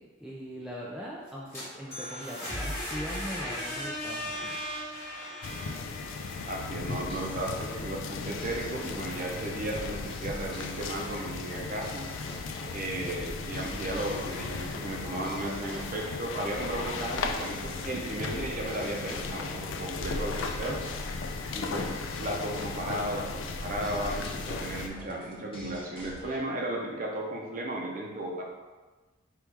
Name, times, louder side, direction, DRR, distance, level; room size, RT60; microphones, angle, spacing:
voice 1, 0.0-4.6, equal, 5° right, -5 dB, 0.3 m, -41 dB
sound 1, 1.3-7.1, equal, 10° left, 1.2 m, -37 dB
sound 2, 5.4-24.9, left 4 dB, 85° left, 0.4 m, -36 dB
voice 2, 6.5-12.1 12.7-20.8 21.5-28.4, right 1 dB, 45° right, 0 dB, 0.7 m, -35 dB
sound 3, 6.9-26.4, equal, 25° left, 0.8 m, -45 dB
4.7 x 3.0 x 3.4 m, 1.3 s
head